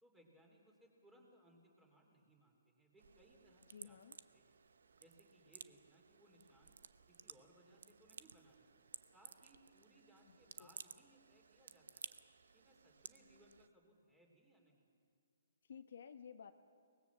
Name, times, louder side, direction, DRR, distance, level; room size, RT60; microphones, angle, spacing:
voice 1, 0.0-4.0 4.3-4.6 5.0-6.7 7.1-8.7 9.1-12.2 12.5-14.9, right 1 dB, 5° right, 1 dB, 3.1 m, -68 dB
sound 1, 3.0-13.7, right 5 dB, 75° right, 0.8 m, -57 dB
voice 2, 3.7-4.2 10.3-10.7 15.7-16.5, left 7 dB, 65° left, 8 dB, 1.0 m, -55 dB
23.5 x 20.0 x 7.2 m, 2.2 s
hypercardioid pair, 160°, 0 cm